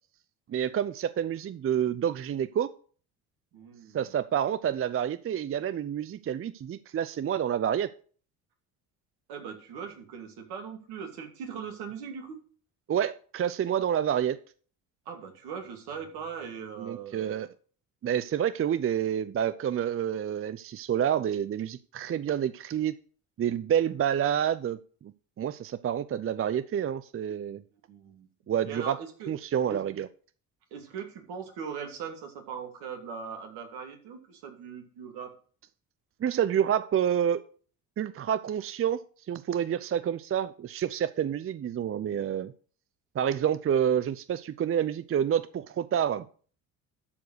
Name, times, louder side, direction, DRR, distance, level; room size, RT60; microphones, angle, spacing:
voice 1, 0.5-2.7 3.9-7.9 12.9-14.4 16.8-17.5 18.0-22.9 23.4-24.8 25.4-27.6 28.5-29.0 29.3-30.1 36.2-37.4 38.0-42.5 43.1-46.3, right 9 dB, 35° right, 15 dB, 0.6 m, -28 dB
voice 2, 3.5-4.1 9.3-12.4 15.1-17.5 27.9-28.3 28.7-29.3 29.7-29.8 30.7-35.3, right 6 dB, 70° right, 3 dB, 2.5 m, -40 dB
12.5 x 4.7 x 6.3 m, 0.43 s
hypercardioid pair, 55°, 41 cm